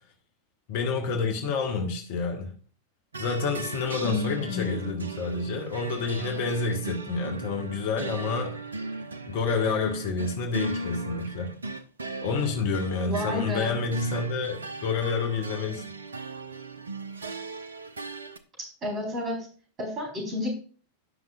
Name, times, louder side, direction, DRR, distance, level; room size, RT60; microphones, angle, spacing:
voice 1, 0.7-2.5 3.2-8.6 9.3-11.5 12.2-15.8, left 4 dB, 50° left, 1.6 m, -29 dB
sound 1, 3.1-18.4, right 3 dB, 75° right, 0.6 m, -37 dB
voice 2, 4.0-4.8 13.1-13.8 18.8-19.5 19.8-20.5, left 2 dB, 25° right, 4.3 m, -31 dB
16.5 x 5.8 x 2.5 m
figure-of-eight pair, 90°, 0 cm